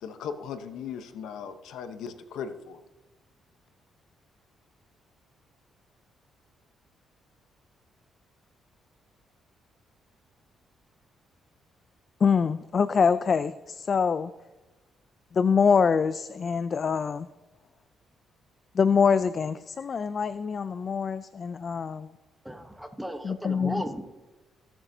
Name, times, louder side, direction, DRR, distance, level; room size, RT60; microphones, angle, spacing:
voice 1, 0.0-2.8, left 7 dB, 80° left, 9 dB, 0.8 m, -38 dB
voice 2, 12.2-14.3 15.3-17.3 18.8-22.1 23.3-23.7, left 6 dB, 45° left, 14 dB, 0.3 m, -24 dB
voice 3, 22.4-24.0, equal, ahead, 8 dB, 1.0 m, -35 dB
20.0 x 7.8 x 2.7 m, 1.2 s
cardioid pair, 90°, 0 cm